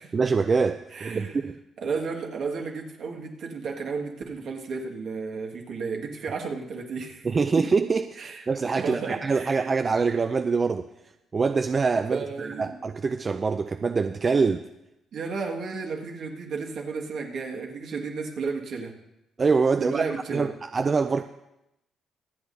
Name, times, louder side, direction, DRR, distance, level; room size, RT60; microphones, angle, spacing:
voice 1, 0.1-1.6 7.2-10.9 11.3-14.6 19.4-20.0 20.3-21.2, right 4 dB, 35° right, 9 dB, 0.4 m, -24 dB
voice 2, 0.9-1.4 1.8-7.3 8.2-8.4 8.8-9.7 12.1-12.8 15.1-18.9 19.8-20.5, right 4 dB, 65° right, 0 dB, 1.8 m, -33 dB
24.5 x 8.3 x 2.7 m, 0.88 s
cardioid pair, 90°, 0 cm